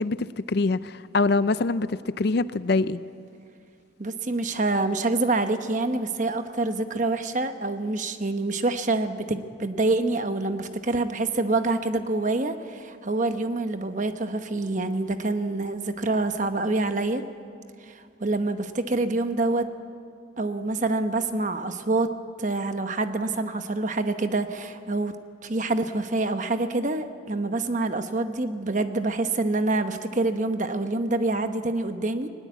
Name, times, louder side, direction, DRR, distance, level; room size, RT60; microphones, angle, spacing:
voice 1, 0.0-3.0, left 3 dB, 55° left, 0.5 m, -24 dB
voice 2, 4.0-17.2 17.9-19.7 20.4-22.1 22.4-25.1 25.4-32.3, right 2 dB, 40° right, 1.0 m, -26 dB
19.5 x 19.5 x 8.2 m
head